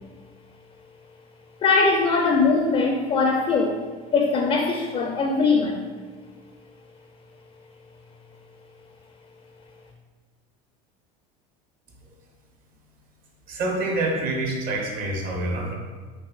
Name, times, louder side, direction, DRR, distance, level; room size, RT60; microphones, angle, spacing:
voice 1, 1.6-3.8 4.1-5.9, left 4 dB, 30° left, 2 dB, 0.4 m, -21 dB
voice 2, 13.5-15.7, right 2 dB, 50° right, 0 dB, 1.0 m, -26 dB
6.0 x 2.5 x 2.4 m, 1.4 s
supercardioid pair, 100°, 19 cm